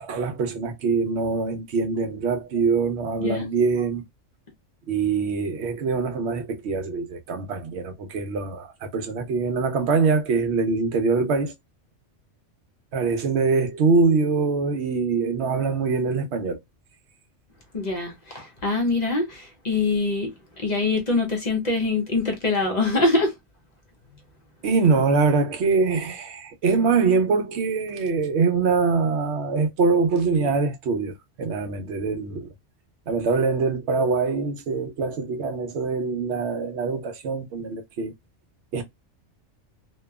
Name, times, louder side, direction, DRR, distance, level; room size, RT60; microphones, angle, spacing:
voice 1, 0.0-4.0 4.9-11.5 12.9-16.6 24.6-32.5 33.1-38.1 38.7-38.8, right 4 dB, 70° right, 0.9 m, -23 dB
voice 2, 17.7-23.3, left 3 dB, 45° left, 0.7 m, -24 dB
2.9 x 2.2 x 2.2 m
omnidirectional pair, 1.2 m